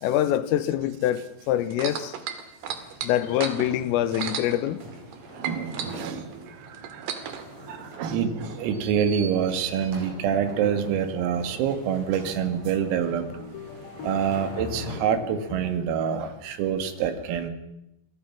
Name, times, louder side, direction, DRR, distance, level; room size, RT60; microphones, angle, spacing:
voice 1, 0.0-2.2 3.0-4.8, left 12 dB, 85° left, 3.7 m, -25 dB
sound 1, 1.7-5.2 5.4-7.4 8.2-8.3, right 8 dB, 60° right, 3.6 m, -34 dB
sound 2, 2.3-2.8 3.3-3.4 4.6-15.7, left 5 dB, 65° left, 3.7 m, -45 dB
sound 3, 2.7-15.0, right 1 dB, 35° right, 6.0 m, -43 dB
voice 2, 5.4-6.4 6.9-7.1 7.7-13.2 14.0-17.5, right 8 dB, 90° right, 4.7 m, -26 dB
26.5 x 21.5 x 6.0 m
omnidirectional pair, 5.9 m